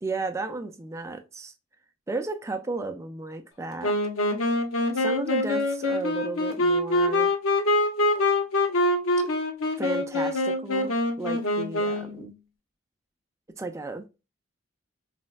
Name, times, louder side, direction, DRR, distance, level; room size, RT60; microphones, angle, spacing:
voice 1, 0.0-1.5 2.1-4.0 4.9-7.3 9.8-12.3 13.5-14.0, right 3 dB, 15° right, 0.3 m, -34 dB
Wind instrument woodwind instrument, 3.8-12.2, left 1 dB, 90° left, 0.6 m, -25 dB
4.1 x 2.1 x 2.2 m
head